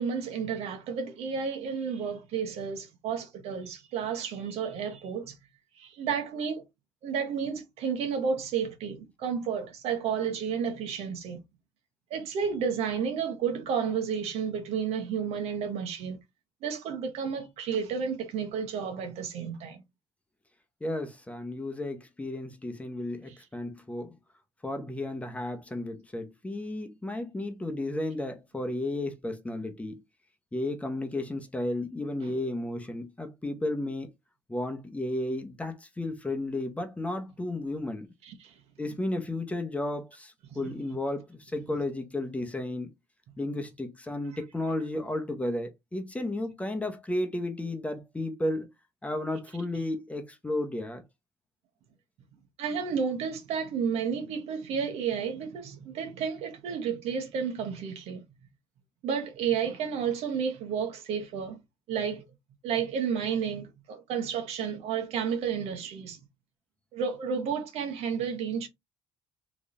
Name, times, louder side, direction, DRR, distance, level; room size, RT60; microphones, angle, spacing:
voice 1, 0.0-5.3 5.8-6.6 7.0-11.4 12.1-16.2 16.6-19.8 32.3-32.4 38.2-38.5 40.5-40.7 52.6-58.2 59.0-61.6 61.9-62.2 62.6-66.2 66.9-68.7, right 6 dB, 70° right, 1.1 m, -31 dB
voice 2, 20.8-24.1 24.6-30.0 30.5-34.1 34.5-38.1 38.8-42.9 43.4-48.7 49.0-51.0, left 1 dB, 10° left, 0.8 m, -33 dB
3.6 x 3.0 x 2.5 m
supercardioid pair, 85°, 11 cm